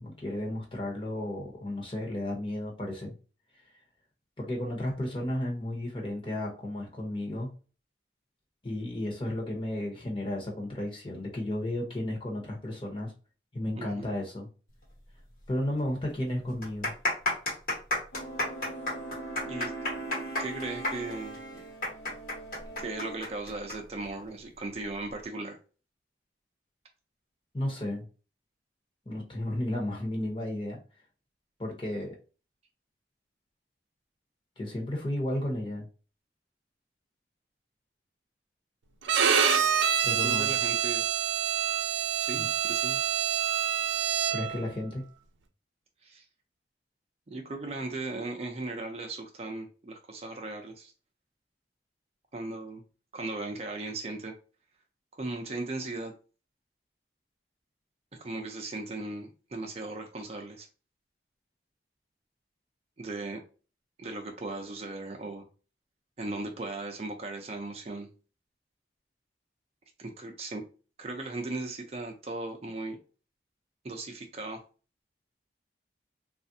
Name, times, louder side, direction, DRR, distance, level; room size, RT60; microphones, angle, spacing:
voice 1, 0.0-3.1 4.4-7.5 8.6-13.1 13.5-14.5 15.5-16.9 27.5-28.1 29.1-30.8 31.6-32.1 34.6-35.9 40.0-40.5 42.4-42.5 44.3-45.0, left 1 dB, 30° left, 0.9 m, -33 dB
voice 2, 13.7-14.1 19.4-19.7 20.4-21.4 22.8-25.6 40.2-41.0 42.2-43.1 46.0-46.2 47.3-50.9 52.3-52.8 53.1-54.3 55.2-56.1 58.2-60.7 63.0-63.4 64.0-65.5 66.2-68.1 70.0-70.6 71.0-73.0 73.8-74.6, right 2 dB, 35° right, 0.5 m, -37 dB
sound 1, 15.4-15.5 15.8-15.9 16.5-23.8 24.0-24.1 24.9-25.2, left 2 dB, 50° left, 1.1 m, -31 dB
sound 2, 18.1-23.2, right 2 dB, 80° left, 0.8 m, -41 dB
Bowed string instrument, 39.1-44.6, right 8 dB, 90° right, 0.4 m, -26 dB
3.3 x 2.4 x 2.6 m
head